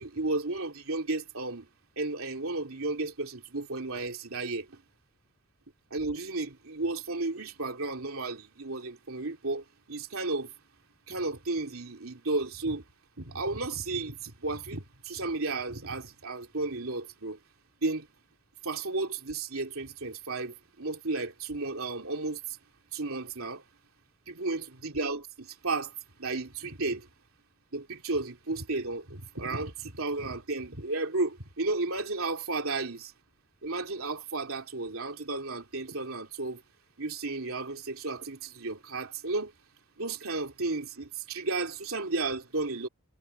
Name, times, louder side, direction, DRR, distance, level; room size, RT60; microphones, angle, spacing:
voice 1, 0.0-1.7 2.0-4.8 5.9-10.5 11.1-12.8 13.2-17.4 17.8-18.1 18.6-22.4 22.9-23.6 24.3-25.9 26.2-27.1 27.7-33.1 33.6-36.6 37.0-39.5 40.0-42.9, right 3 dB, 70° right, 3.4 m, -33 dB
head